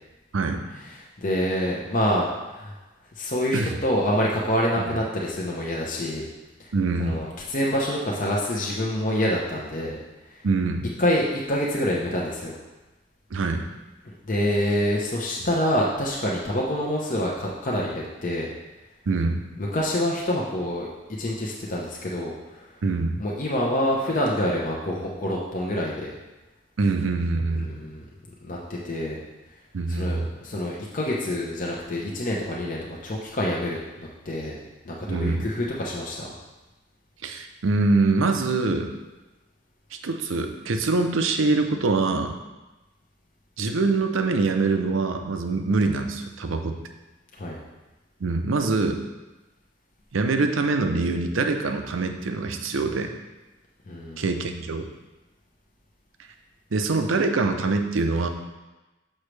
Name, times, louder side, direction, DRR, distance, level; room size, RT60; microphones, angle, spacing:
voice 1, 0.7-2.8 3.1-6.3 6.6-6.7 7.0-10.0 10.3-10.4 11.0-12.6 14.2-18.5 19.6-20.9 21.2-22.8 23.2-26.1 27.5-28.0 28.4-29.2 29.9-34.6 34.8-36.3 47.4-47.6 53.9-54.2, left 1 dB, 40° left, -3 dB, 0.8 m, -27 dB
voice 2, 6.7-7.2 10.4-10.9 13.3-13.7 19.1-19.5 22.8-23.2 26.8-27.7 29.7-30.3 35.1-35.5 37.2-38.9 39.9-42.4 43.6-46.8 48.2-49.0 50.1-53.1 54.2-54.9 56.7-58.3, right 3 dB, 80° right, 6 dB, 0.6 m, -24 dB
6.4 x 6.1 x 3.3 m, 1.1 s
head